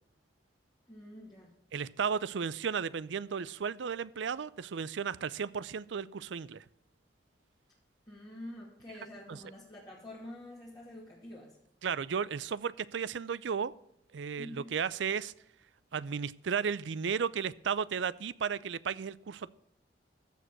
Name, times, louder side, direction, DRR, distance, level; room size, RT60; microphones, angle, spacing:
voice 1, 0.9-1.5 8.1-11.6 14.4-14.7, left 1 dB, 20° left, 2.4 m, -47 dB
voice 2, 1.7-6.6 9.3-9.4 11.8-13.7 14.1-15.3 15.9-19.5, right 6 dB, 75° right, 0.5 m, -34 dB
14.5 x 5.1 x 6.0 m
head